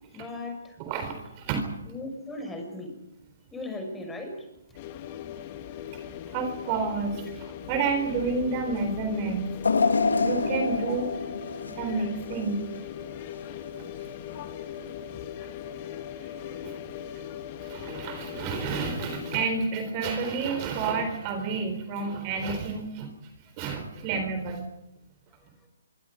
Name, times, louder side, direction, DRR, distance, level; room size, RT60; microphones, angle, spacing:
voice 1, 0.1-0.8 1.8-3.0 3.5-4.8 25.4-25.7, left 2 dB, 10° left, 4 dB, 5.9 m, -38 dB
voice 2, 0.8-1.7 5.9-9.6 10.2-11.1 11.7-12.6 13.8-13.9 14.8-15.1 16.2-16.8 17.1-17.2 17.6-23.1 23.6-24.7, right 4 dB, 30° right, 7 dB, 3.9 m, -30 dB
sound 1, 4.7-19.5, left 10 dB, 35° left, 2.3 m, -39 dB
sound 2, 9.6-12.8 13.2-13.4 14.4-14.5, left 4 dB, 80° left, 2.7 m, -27 dB
27.0 x 24.5 x 5.2 m, 0.90 s
hypercardioid pair, 145°, 0 cm